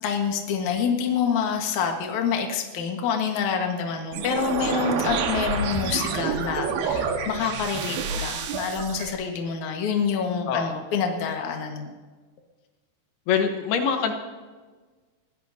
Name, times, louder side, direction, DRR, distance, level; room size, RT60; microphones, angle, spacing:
voice 1, 0.0-11.9, left 6 dB, 60° left, 2 dB, 2.6 m, -27 dB
sound 1, 4.1-9.1, right 5 dB, 75° right, 3.1 m, -28 dB
voice 2, 10.5-10.8 13.3-14.1, left 7 dB, 85° left, 5 dB, 3.1 m, -24 dB
22.5 x 16.5 x 2.8 m, 1.4 s
omnidirectional pair, 4.4 m